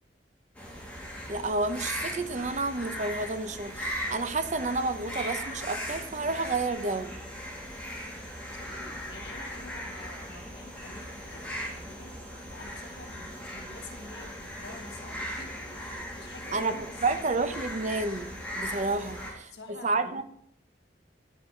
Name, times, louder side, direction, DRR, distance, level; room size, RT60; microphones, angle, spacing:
sound 1, 0.5-19.3, equal, 10° left, 2.5 m, -39 dB
voice 1, 1.3-7.1 16.5-16.8 17.0-20.2, right 3 dB, 45° right, 10 dB, 0.8 m, -30 dB
voice 2, 8.6-12.1 12.5-16.8 19.2-20.2, left 2 dB, 70° left, 5 dB, 1.6 m, -48 dB
10.0 x 6.3 x 4.6 m, 0.67 s
head